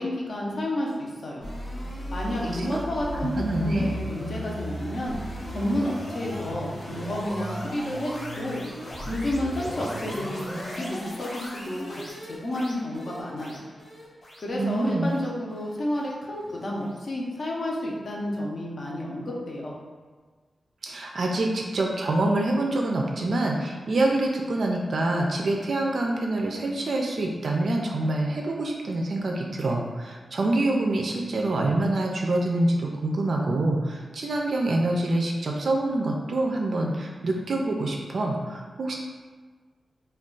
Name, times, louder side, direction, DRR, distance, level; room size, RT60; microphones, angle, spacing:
voice 1, 0.0-1.4 2.1-3.3 3.6-5.2 5.5-8.6 9.1-13.6 14.4-19.7, left 1 dB, 55° left, -3 dB, 0.6 m, -31 dB
sound 1, 1.4-16.6, equal, 85° left, 0.9 m, -36 dB
voice 2, 2.4-2.8 3.4-3.9 14.5-15.1 20.8-39.0, right 2 dB, 60° right, 0 dB, 0.3 m, -26 dB
2.4 x 2.2 x 3.7 m, 1.4 s
wide cardioid pair, 120°, 0 cm